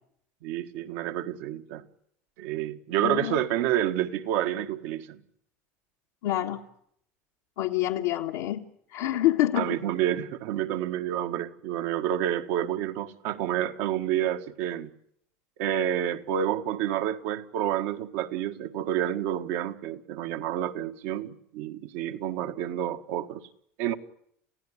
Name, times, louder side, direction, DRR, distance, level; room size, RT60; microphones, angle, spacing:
voice 1, 0.4-1.8 2.4-5.2 9.6-14.9 15.6-23.4 23.8-23.9, right 11 dB, 70° right, 1.7 m, -29 dB
voice 2, 3.0-3.4 6.2-6.6 7.6-8.6 8.9-9.8, left 14 dB, 80° left, 1.6 m, -26 dB
29.0 x 16.0 x 9.9 m
hypercardioid pair, 90°, 7 cm